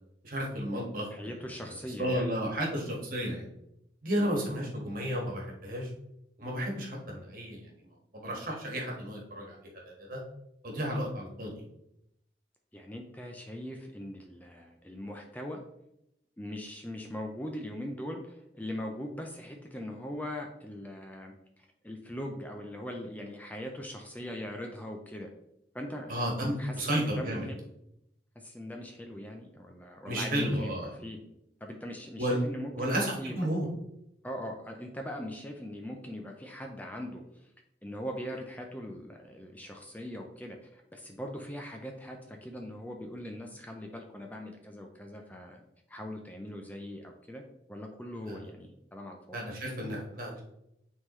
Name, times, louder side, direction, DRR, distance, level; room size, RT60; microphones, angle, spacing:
voice 1, 0.2-1.3 1.7-3.4 4.0-5.9 6.4-7.6 8.1-9.6 9.8-10.2 10.6-11.6 26.1-27.4 30.1-30.9 32.2-32.4 32.7-33.7 48.3-48.4 49.3-50.4, equal, 50° right, -1 dB, 1.7 m, -32 dB
voice 2, 1.1-2.3 4.2-4.4 12.7-15.6 16.4-21.3 21.8-25.3 25.7-27.6 28.4-31.2 31.6-33.4 34.2-37.5 37.8-45.6 45.9-47.4 47.7-49.4, equal, 10° left, 2 dB, 0.5 m, -41 dB
9.3 x 3.8 x 3.1 m, 0.81 s
head